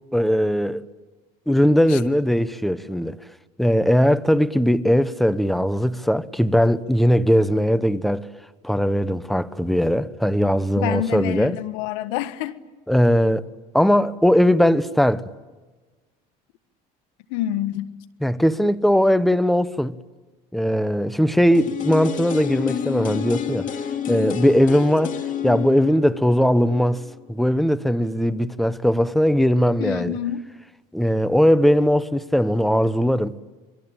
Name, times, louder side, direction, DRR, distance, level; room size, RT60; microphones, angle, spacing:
voice 1, 0.1-0.8 1.5-3.2 3.6-8.3 8.6-11.6 12.9-13.5 13.7-15.2 18.2-19.9 20.5-23.7 24.1-25.2 25.4-27.0 27.3-30.2 30.9-33.4, equal, ahead, 1.0 m, -19 dB
voice 2, 10.8-12.6 17.3-17.9 29.8-30.4, left 12 dB, 80° left, 1.6 m, -27 dB
sound 1, 21.5-27.5 27.8-27.9, left 9 dB, 45° left, 2.8 m, -29 dB
28.0 x 22.0 x 8.9 m
supercardioid pair, 115°, 19 cm